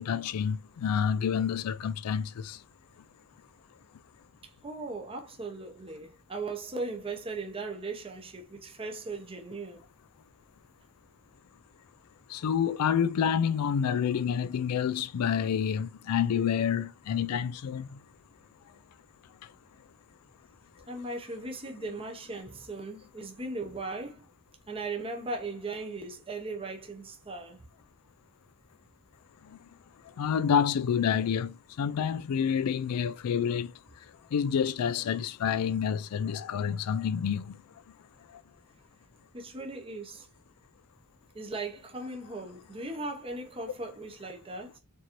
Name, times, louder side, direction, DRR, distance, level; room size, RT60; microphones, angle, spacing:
voice 1, 0.0-2.6 12.3-18.0 29.5-29.6 30.2-33.7 34.3-37.6, left 7 dB, 85° left, 0.4 m, -28 dB
voice 2, 4.6-9.8 20.9-24.3 24.7-27.6 39.3-40.3 41.3-44.8, right 3 dB, 25° right, 0.7 m, -38 dB
4.5 x 2.6 x 2.9 m
head